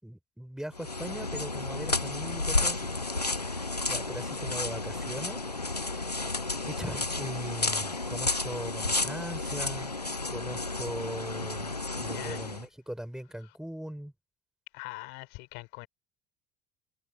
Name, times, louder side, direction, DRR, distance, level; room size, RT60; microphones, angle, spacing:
voice 1, 0.0-2.9 3.4-6.1 6.6-9.9 10.3-14.1, equal, 5° right, 3.8 m, -40 dB
sound 1, 0.7-12.7, left 3 dB, 90° left, 0.9 m, -32 dB
voice 2, 12.1-12.5 14.7-15.9, left 27 dB, 60° left, 3.6 m, -42 dB
figure-of-eight pair, 60°, 20 cm